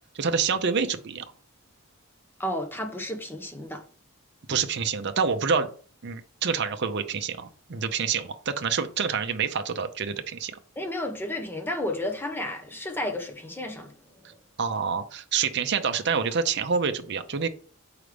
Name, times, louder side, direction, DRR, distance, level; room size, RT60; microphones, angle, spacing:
voice 1, 0.1-1.2 4.5-5.7 6.0-10.6 14.6-17.5, right 6 dB, 55° right, 0.6 m, -27 dB
voice 2, 2.4-3.8 10.8-13.9 14.2-14.4, left 1 dB, 10° left, 0.9 m, -32 dB
6.4 x 4.8 x 3.4 m
head